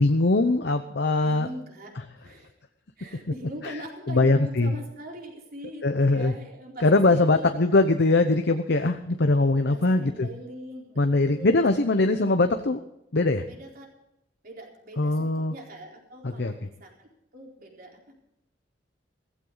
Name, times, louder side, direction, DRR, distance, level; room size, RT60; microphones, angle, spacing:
voice 1, 0.0-1.5 4.1-4.7 5.8-6.3 6.8-10.3 11.0-12.8 13.1-13.4 15.0-15.5 16.2-16.5, left 2 dB, 65° left, 7 dB, 0.9 m, -21 dB
voice 2, 1.2-2.5 3.0-7.5 9.7-12.3 13.5-13.9 14.4-18.1, equal, 55° right, 0 dB, 4.2 m, -42 dB
16.5 x 15.0 x 4.0 m, 0.81 s
head